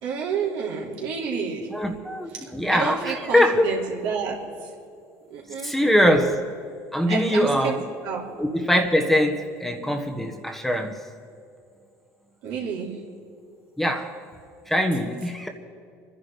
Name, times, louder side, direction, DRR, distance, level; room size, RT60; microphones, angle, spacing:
voice 1, 0.0-1.7 2.7-4.4 5.3-5.7 7.1-7.5 8.0-8.2 12.4-13.0, right 6 dB, 70° right, -2 dB, 3.8 m, -29 dB
voice 2, 1.7-3.7 5.6-6.4 6.9-7.8 8.4-11.0 13.8-14.1 14.7-15.5, equal, 5° left, 3 dB, 1.4 m, -22 dB
26.5 x 10.5 x 5.1 m, 2.4 s
supercardioid pair, 95°, 8 cm